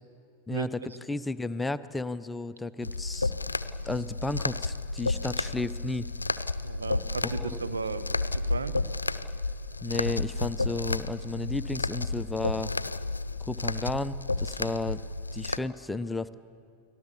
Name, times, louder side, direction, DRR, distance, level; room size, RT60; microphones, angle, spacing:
voice 1, 0.5-3.3 3.8-6.1 7.2-7.6 9.8-12.7 13.4-15.0 15.3-16.3, left 2 dB, 10° left, 14 dB, 0.7 m, -33 dB
sound 1, 2.8-15.6, left 3 dB, 80° left, 0.6 m, -32 dB
voice 2, 6.6-8.8, right 4 dB, 75° right, 12 dB, 1.2 m, -35 dB
29.5 x 20.5 x 7.1 m, 2.8 s
figure-of-eight pair, 90°, 0 cm